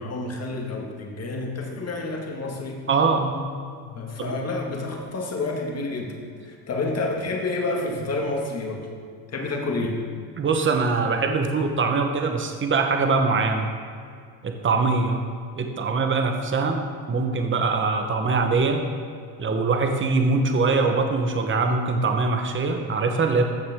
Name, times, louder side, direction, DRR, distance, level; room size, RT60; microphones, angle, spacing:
voice 1, 0.0-2.9 3.8-8.9 9.3-10.0, left 2 dB, 35° left, 1 dB, 1.9 m, -29 dB
voice 2, 2.9-3.5 4.2-4.3 10.4-13.7 14.4-15.2 15.6-18.8 19.4-23.5, right 4 dB, 25° right, 4 dB, 1.1 m, -23 dB
14.5 x 6.5 x 3.7 m, 2.2 s
supercardioid pair, 100°, 45 cm